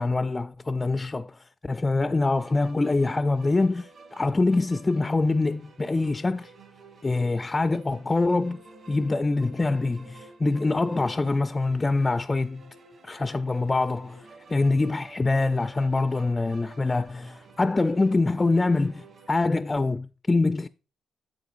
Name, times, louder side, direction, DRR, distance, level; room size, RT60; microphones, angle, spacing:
voice 1, 0.0-6.5 7.0-8.6 8.9-12.7 13.0-20.7, left 3 dB, 25° left, 0.3 m, -25 dB
sound 1, 2.3-19.3, right 3 dB, 65° right, 2.6 m, -51 dB
9.1 x 7.4 x 2.5 m
cardioid pair, 75°, 0 cm